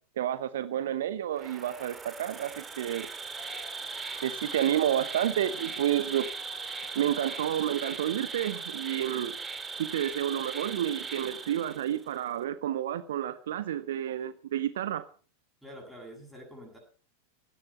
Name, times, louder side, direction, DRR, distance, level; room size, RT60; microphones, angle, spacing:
voice 1, 0.2-3.1 4.2-6.3 6.9-9.4 9.8-15.1, right 11 dB, 60° right, 13 dB, 1.0 m, -30 dB
Insect, 1.3-12.1, right 5 dB, 15° right, 2.4 m, -39 dB
sound 1, 3.2-10.7, left 7 dB, 40° left, 7.7 m, -54 dB
voice 2, 15.6-16.8, equal, ahead, 3 dB, 7.3 m, -46 dB
17.0 x 13.5 x 5.7 m, 0.40 s
figure-of-eight pair, 90°, 0 cm